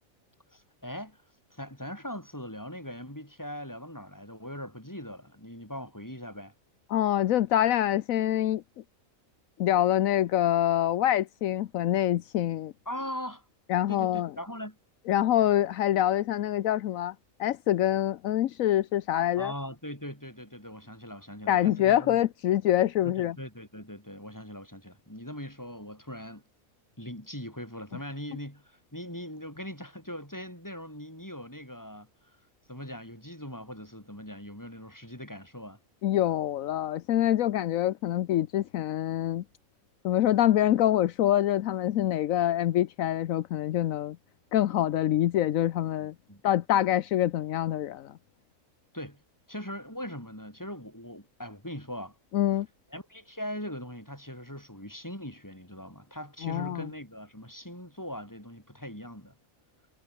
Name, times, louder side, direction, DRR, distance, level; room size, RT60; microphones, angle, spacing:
voice 1, 0.5-1.2 1.5-6.5 12.9-13.4 13.9-14.8 19.4-22.2 23.0-26.4 27.0-32.1 32.7-35.8 46.0-46.4 48.9-49.2 49.5-52.2 52.9-59.4, equal, 15° left, 7.0 m, -40 dB
voice 2, 6.9-8.6 9.6-12.7 13.7-14.3 15.1-17.1 17.4-19.5 21.5-23.4 36.0-39.4 40.0-44.2 44.5-46.1 46.4-48.1 52.3-52.7 56.4-56.9, left 12 dB, 80° left, 1.1 m, -25 dB
omnidirectional pair, 1.4 m